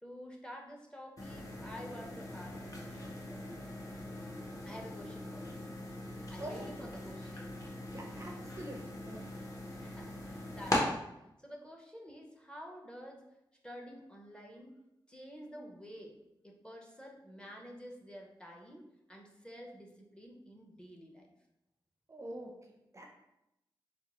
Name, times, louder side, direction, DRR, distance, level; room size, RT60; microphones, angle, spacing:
voice 1, 0.0-3.5 4.7-5.8 6.3-7.6 9.8-13.3 13.6-14.8 15.1-16.2 16.4-21.3, equal, 10° left, 0 dB, 0.6 m, -50 dB
sound 1, 1.2-10.8, left 1 dB, 35° left, 0.8 m, -41 dB
voice 2, 6.4-6.9 7.9-9.3 22.1-23.1, right 1 dB, 35° right, 1 dB, 0.4 m, -46 dB
4.1 x 2.2 x 2.9 m, 0.87 s
wide cardioid pair, 85°, 9 cm